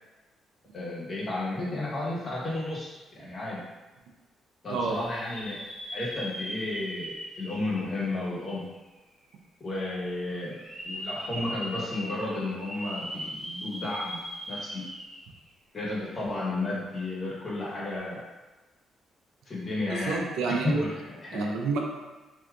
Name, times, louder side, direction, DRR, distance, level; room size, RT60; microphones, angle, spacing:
voice 1, 0.7-3.6 4.6-5.6 5.9-8.6 9.6-14.2 14.5-14.8 15.7-18.2 19.4-21.5, left 2 dB, 45° left, -6 dB, 1.2 m, -33 dB
sound 1, 4.8-8.7 9.3-9.4 10.4-15.4 15.8-15.9 17.8-18.0, equal, 15° right, 1.0 m, -39 dB
voice 2, 19.9-20.9 21.3-21.8, right 4 dB, 85° right, 0 dB, 0.5 m, -29 dB
3.4 x 2.7 x 2.4 m, 1.2 s
cardioid pair, 90°, 0 cm